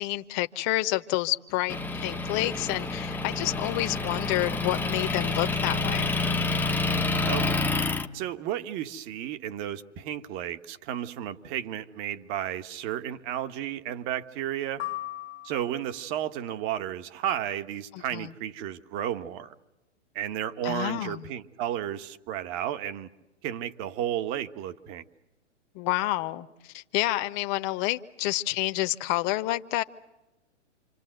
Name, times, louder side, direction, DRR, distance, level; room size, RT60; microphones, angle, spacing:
voice 1, 0.0-6.2 17.9-18.3 20.6-21.3 25.7-29.8, left 17 dB, 40° left, 1.2 m, -29 dB
Motor vehicle (road) / Engine, 1.7-8.1, left 3 dB, 5° left, 1.0 m, -28 dB
voice 2, 7.3-7.7 8.1-14.8 15.4-19.5 20.1-23.1 23.4-25.0, right 11 dB, 35° right, 1.5 m, -33 dB
sound 1, 14.8-16.1, left 16 dB, 90° left, 1.8 m, -37 dB
27.5 x 26.5 x 8.0 m
hypercardioid pair, 125°, 36 cm